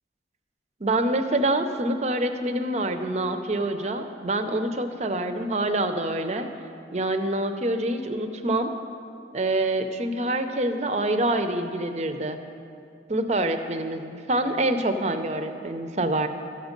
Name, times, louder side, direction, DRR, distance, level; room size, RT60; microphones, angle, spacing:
voice 1, 0.8-6.5 6.9-8.7 9.3-12.4 13.1-16.3, right 1 dB, 35° right, 8 dB, 0.6 m, -26 dB
13.0 x 8.1 x 5.2 m, 2.5 s
head